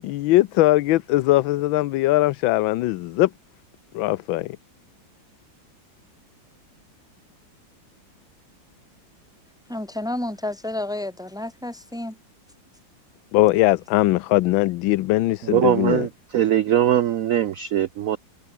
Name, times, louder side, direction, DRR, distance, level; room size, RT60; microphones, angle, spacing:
voice 1, 0.0-3.3 3.9-4.6 13.3-16.1, left 17 dB, 80° left, 1.4 m, -20 dB
voice 2, 9.7-12.1, left 1 dB, ahead, 1.1 m, -30 dB
voice 3, 15.5-16.1 16.3-18.2, right 11 dB, 80° right, 0.7 m, -20 dB
omnidirectional pair, 2.1 m